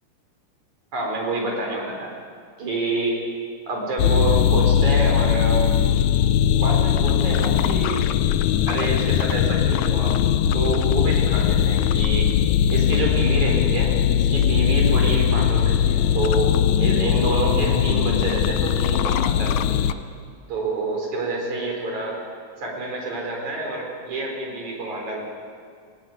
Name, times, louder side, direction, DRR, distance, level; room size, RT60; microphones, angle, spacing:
voice 1, 0.9-2.1 2.6-3.2 3.7-5.7 6.6-8.1 8.7-10.2 10.5-12.3 12.7-19.8 20.5-22.2 22.6-25.3, right 2 dB, 65° right, 0 dB, 5.6 m, -27 dB
sound 1, 4.0-19.9, left 9 dB, 75° left, 1.9 m, -20 dB
19.0 x 18.0 x 9.4 m, 2.1 s
omnidirectional pair, 3.7 m